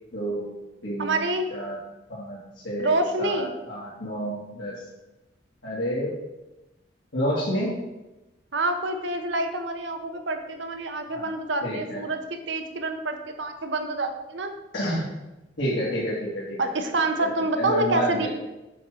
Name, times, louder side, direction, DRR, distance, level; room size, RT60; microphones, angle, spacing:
voice 1, 0.1-0.4 0.8-1.2 1.5-1.8 2.1-2.4 2.6-4.7 5.6-6.1 7.1-7.8 11.1-11.3 11.6-12.0 14.7-15.1 15.6-16.6 17.2-17.3 17.6-18.3, equal, 70° left, -8 dB, 2.2 m, -29 dB
voice 2, 1.0-1.5 2.8-3.5 8.5-14.5 16.6-18.3, right 2 dB, 70° right, 5 dB, 0.8 m, -27 dB
7.7 x 4.6 x 6.2 m, 1.0 s
head